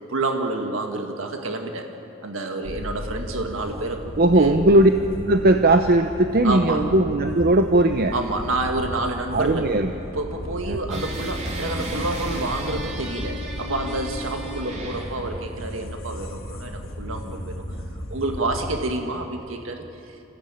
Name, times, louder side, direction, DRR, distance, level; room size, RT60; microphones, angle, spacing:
voice 1, 0.1-1.9 2.2-4.6 6.4-6.8 8.1-9.7 10.1-17.6 18.1-20.2, right 2 dB, 90° right, 4 dB, 1.7 m, -28 dB
sound 1, 2.6-18.9, equal, 85° left, 2.3 m, -35 dB
voice 2, 4.2-4.9 5.3-8.1 9.3-9.9 10.7-11.0, right 1 dB, 50° right, 6 dB, 0.8 m, -18 dB
sound 2, 10.9-15.4, right 1 dB, 35° right, 2.8 m, -34 dB
27.0 x 15.5 x 8.9 m, 2.8 s
head